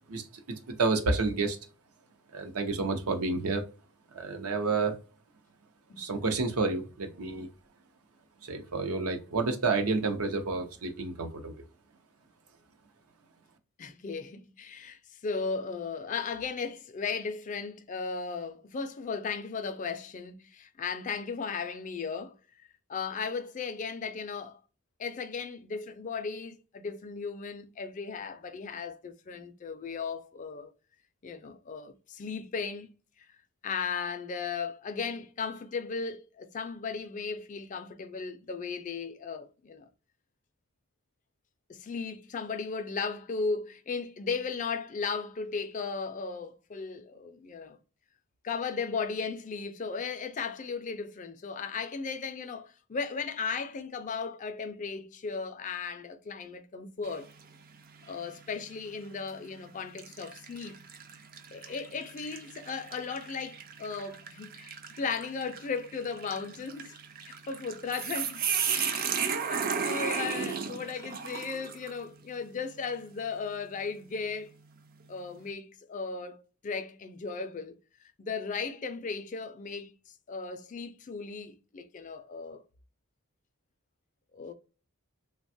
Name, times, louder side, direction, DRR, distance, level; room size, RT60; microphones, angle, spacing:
voice 1, 0.1-1.6 2.3-3.6 4.1-5.0 6.0-7.5 8.4-11.6, right 3 dB, 75° right, 0.6 m, -30 dB
voice 2, 5.9-6.3 13.8-24.6 25.0-30.7 31.2-32.9 33.6-39.9 41.7-47.8 48.4-57.3 58.1-60.8 61.5-67.0 67.3-68.4 68.7-74.5 75.1-76.4 76.6-77.7 78.2-79.9 80.3-82.6 84.3-84.5, left 5 dB, 35° left, 0.3 m, -36 dB
sound 1, 57.0-57.5 58.0-58.2 59.1-59.4 60.0-72.0, right 6 dB, 40° right, 0.3 m, -35 dB
3.4 x 2.2 x 2.5 m
head